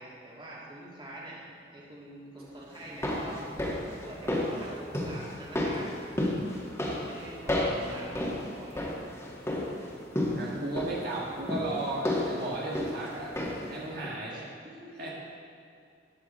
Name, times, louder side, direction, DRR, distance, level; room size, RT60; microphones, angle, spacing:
voice 1, 0.0-1.4 1.7-3.6 4.0-5.9 6.8-8.2 8.5-8.9 14.3-15.1, right 1 dB, 30° right, -5 dB, 2.7 m, -46 dB
sound 1, 2.7-13.8 14.0-14.1, left 1 dB, 15° left, 1.9 m, -33 dB
voice 2, 7.8-8.1 10.3-13.3 13.7-14.4 15.0-15.1, right 2 dB, 60° right, -4 dB, 1.6 m, -35 dB
14.5 x 9.9 x 4.3 m, 2.5 s
head